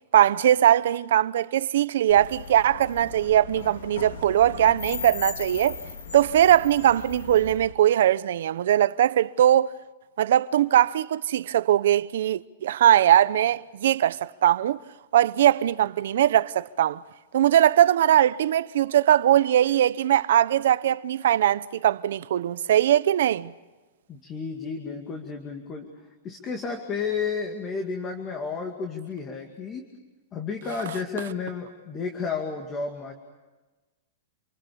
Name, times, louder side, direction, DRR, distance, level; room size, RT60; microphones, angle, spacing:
voice 1, 0.1-5.8 6.1-9.7 10.2-14.8 15.1-17.0 17.3-23.5, right 11 dB, 70° right, 0.8 m, -20 dB
sound 1, 2.1-7.7, left 6 dB, 90° left, 2.2 m, -38 dB
voice 2, 24.1-25.9 26.2-29.9 30.3-33.1, left 5 dB, 20° left, 2.3 m, -32 dB
28.0 x 24.0 x 7.0 m
supercardioid pair, 165°, 0 cm